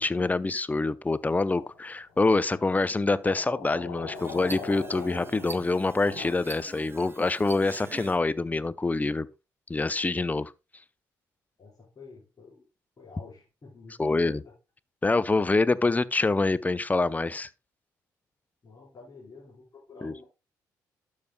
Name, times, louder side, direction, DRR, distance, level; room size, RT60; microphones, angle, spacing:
voice 1, 0.0-9.3 9.7-10.5 14.0-14.4 15.0-17.5 20.0-20.1, left 3 dB, 20° left, 0.6 m, -26 dB
sound 1, 1.6-1.9 3.2-6.3, left 5 dB, 85° left, 2.1 m, -40 dB
sound 2, 4.1-8.2, right 4 dB, 25° right, 0.7 m, -44 dB
voice 2, 11.6-12.6 13.0-14.5 18.6-20.2, left 4 dB, 40° left, 4.2 m, -49 dB
12.0 x 6.6 x 2.2 m
hypercardioid pair, 45°, 9 cm